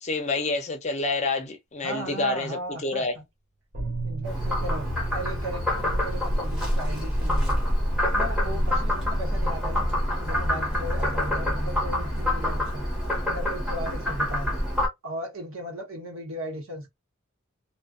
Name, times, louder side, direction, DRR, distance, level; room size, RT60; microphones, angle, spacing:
voice 1, 0.0-3.1, left 3 dB, 35° left, 0.6 m, -28 dB
voice 2, 1.8-3.2 4.0-7.7 8.0-9.9 10.2-12.9 13.3-14.7 15.0-16.9, right 1 dB, 80° right, 1.0 m, -36 dB
sound 1, 3.7-11.8, right 3 dB, 50° right, 0.5 m, -39 dB
Frog, 4.2-14.9, left 1 dB, 5° right, 0.9 m, -26 dB
2.5 x 2.2 x 2.4 m
head